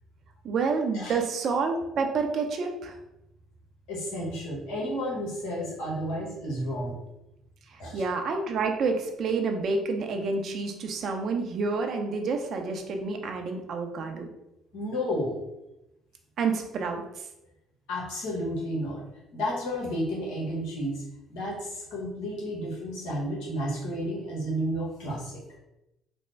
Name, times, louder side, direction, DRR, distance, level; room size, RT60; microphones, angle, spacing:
voice 1, 0.4-3.0 7.7-14.3 16.4-17.0, right 4 dB, 55° right, 4 dB, 0.5 m, -29 dB
voice 2, 3.9-6.9 7.8-8.0 14.7-15.4 17.9-19.0 19.3-21.0 21.3-25.4, equal, 75° left, -5 dB, 1.2 m, -32 dB
3.4 x 2.1 x 3.2 m, 0.89 s
hypercardioid pair, 65°, 0 cm